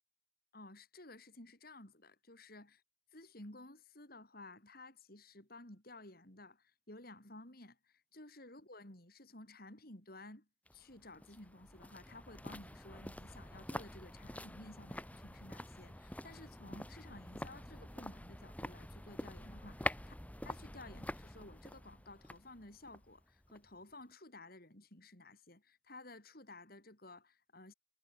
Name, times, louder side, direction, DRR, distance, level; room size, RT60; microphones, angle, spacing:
voice 1, 0.5-2.8 3.1-20.1 20.4-27.7, left 2 dB, 50° left, 4.4 m, -54 dB
sound 1, 10.7-23.8 24.1-24.2, left 1 dB, 5° left, 2.5 m, -46 dB
head